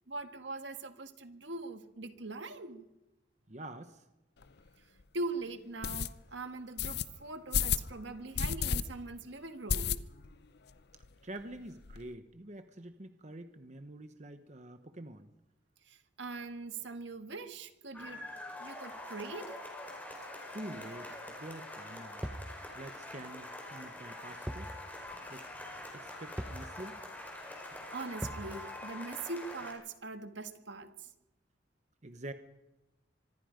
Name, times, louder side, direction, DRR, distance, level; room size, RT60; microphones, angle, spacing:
voice 1, 0.1-2.9 5.1-10.0 15.9-18.2 18.6-19.6 27.6-31.1, right 3 dB, 80° right, 8 dB, 1.7 m, -42 dB
voice 2, 3.5-4.0 11.2-15.3 20.5-22.2 22.7-24.7 25.3-25.4 25.9-27.0 32.0-32.3, right 1 dB, 40° right, 8 dB, 1.1 m, -46 dB
sound 1, 4.4-4.5 5.0-5.1 5.8-6.1 6.8-7.0 7.5-7.9 8.3-8.8 9.1-9.2 9.7-10.3 10.7-10.8 11.0-11.1 11.4-12.0, left 7 dB, 60° left, 0.7 m, -31 dB
sound 2, 17.9-29.7, left 1 dB, 10° left, 4.8 m, -45 dB
sound 3, 22.2-22.5 24.5-24.7 25.1-25.2 26.4-26.7 28.2-28.5, equal, 5° right, 1.1 m, -39 dB
25.5 x 20.0 x 5.2 m, 0.96 s
head